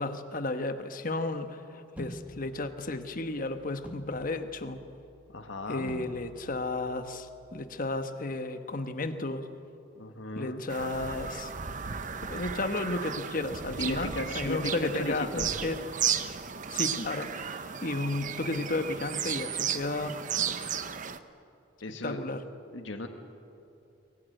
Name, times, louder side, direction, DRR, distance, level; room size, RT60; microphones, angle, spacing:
voice 1, 0.0-4.8 5.7-9.5 10.3-11.5 12.2-15.8 16.7-20.7 22.0-22.4, left 2 dB, 45° left, 8 dB, 1.2 m, -33 dB
sound 1, 2.0-8.0, equal, 10° right, 1.8 m, -49 dB
voice 2, 5.3-5.9 9.9-10.6 13.8-15.5 21.8-22.3 22.7-23.1, left 1 dB, 75° left, 5 dB, 1.6 m, -36 dB
Bird vocalization bird call bird song, 10.7-21.2, right 8 dB, 40° right, 0.8 m, -34 dB
23.0 x 17.5 x 9.2 m, 2.7 s
head